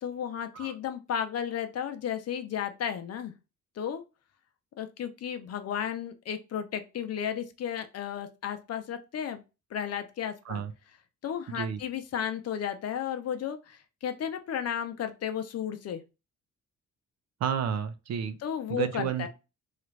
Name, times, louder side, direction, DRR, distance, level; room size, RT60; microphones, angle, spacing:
voice 1, 0.0-3.3 3.8-4.0 4.8-9.4 9.7-10.6 11.2-16.0 18.4-19.3, left 8 dB, 55° left, 0.6 m, -33 dB
voice 2, 17.4-18.4 18.7-19.3, right 8 dB, 60° right, 0.6 m, -31 dB
3.1 x 2.4 x 3.2 m
cardioid pair, 90°, 30 cm